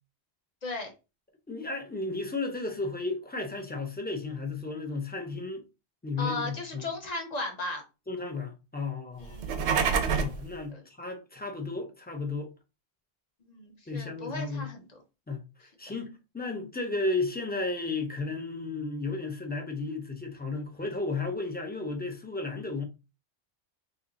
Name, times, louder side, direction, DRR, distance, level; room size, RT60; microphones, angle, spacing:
voice 1, 0.6-0.9 6.2-7.8 9.2-9.5 10.7-10.8 13.5-15.0 15.9-16.0, left 2 dB, 40° left, 0.8 m, -36 dB
voice 2, 1.5-5.6 6.0-6.9 8.1-9.4 10.2-12.5 13.9-14.7 15.3-22.8, left 3 dB, 15° left, 0.4 m, -34 dB
sound 1, 9.3-10.4, right 6 dB, 85° right, 0.9 m, -26 dB
2.7 x 2.6 x 3.8 m
omnidirectional pair, 1.1 m